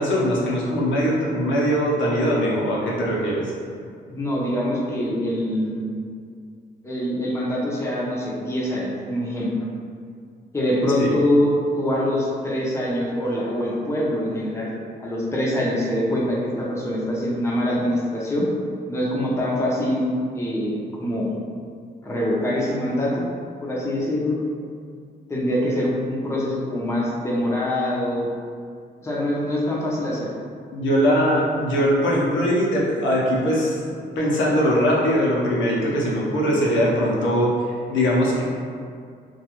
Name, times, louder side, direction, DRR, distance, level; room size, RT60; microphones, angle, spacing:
voice 1, 0.0-3.5 11.0-11.1 30.7-33.8 34.2-37.5 37.9-38.4, equal, 85° left, -4 dB, 0.6 m, -21 dB
voice 2, 4.1-5.9 6.8-9.5 10.5-14.7 15.0-18.5 18.9-21.4 22.0-23.2 23.6-24.4 25.3-28.3 29.0-30.4, left 1 dB, 15° left, -5 dB, 0.6 m, -24 dB
2.3 x 2.3 x 2.9 m, 2.2 s
cardioid pair, 80°, 19 cm